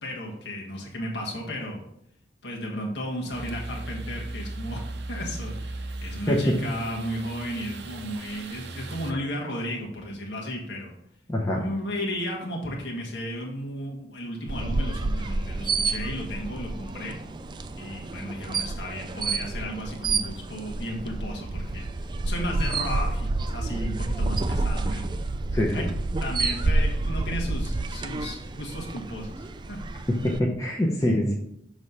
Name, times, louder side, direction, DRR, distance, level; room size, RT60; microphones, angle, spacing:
voice 1, 0.0-1.8 2.4-10.9 11.5-17.2 17.8-21.9 22.2-25.1 25.7-25.8 26.2-30.0, equal, 85° left, -2 dB, 1.4 m, -34 dB
sound 1, 3.3-9.1, right 2 dB, 70° right, 0.6 m, -37 dB
sound 2, 14.5-30.4, right 3 dB, 25° right, 0.3 m, -29 dB
voice 2, 25.5-25.8 30.1-31.3, left 1 dB, 20° left, -3 dB, 0.7 m, -24 dB
6.2 x 3.2 x 5.4 m, 0.76 s
head